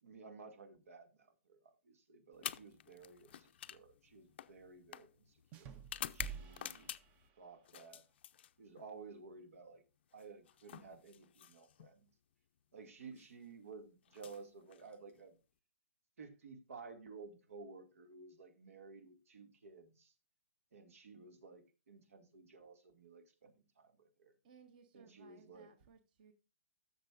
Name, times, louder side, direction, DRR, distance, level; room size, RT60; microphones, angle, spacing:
voice 1, 0.0-6.9 7.4-8.0 8.6-9.8 10.1-12.1 12.7-15.3 16.2-20.1 20.7-24.3 24.9-25.7, right 4 dB, 80° right, 2.2 m, -55 dB
sound 1, 2.3-7.3 7.7-8.9 10.1-11.9 13.0-13.3 14.1-15.2, left 11 dB, 50° left, 0.5 m, -49 dB
sound 2, 5.5-7.7, right 6 dB, 20° right, 0.5 m, -50 dB
voice 2, 24.4-26.3, right 6 dB, 40° right, 1.0 m, -62 dB
16.0 x 6.8 x 2.5 m
hypercardioid pair, 165°, 7 cm